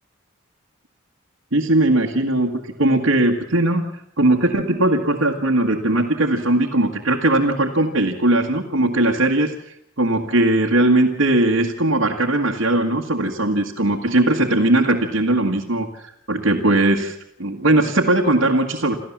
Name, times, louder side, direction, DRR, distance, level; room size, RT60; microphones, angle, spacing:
voice 1, 1.5-3.9 4.2-9.5 10.0-17.1 17.4-19.0, right 1 dB, 75° right, -2 dB, 1.9 m, -19 dB
28.0 x 14.5 x 7.4 m, 0.75 s
head